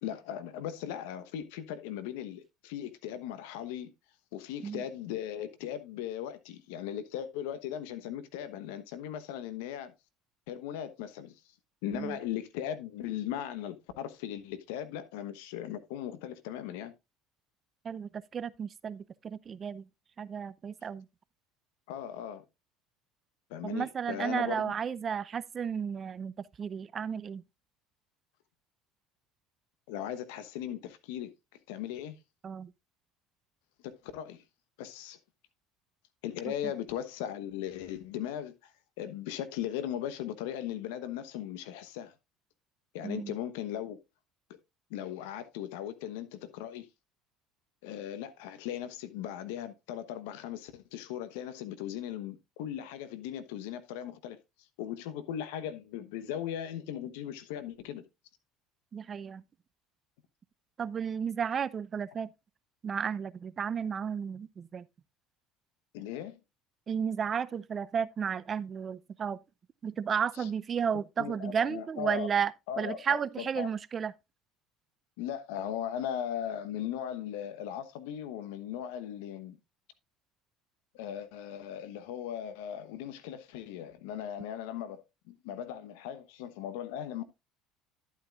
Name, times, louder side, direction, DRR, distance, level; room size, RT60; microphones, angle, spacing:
voice 1, 0.0-3.9 4.3-9.9 10.5-11.3 11.8-16.9 21.9-22.4 23.5-24.7 29.9-31.3 31.7-32.2 33.8-34.4 34.8-35.2 36.2-38.7 39.0-42.1 42.9-44.0 44.9-46.9 47.8-54.4 54.8-58.0 65.9-66.4 70.4-70.5 71.2-72.3 72.7-73.7 75.2-79.6 80.9-87.2, left 10 dB, 80° left, 1.1 m, -38 dB
voice 2, 17.8-19.9 20.2-21.1 23.6-26.3 26.6-27.4 32.4-32.7 36.5-36.6 43.0-43.3 58.9-59.4 60.8-62.3 62.8-64.9 66.9-69.4 69.8-74.1, right 7 dB, 40° right, 0.6 m, -33 dB
11.5 x 8.3 x 2.4 m
hypercardioid pair, 80°, 0 cm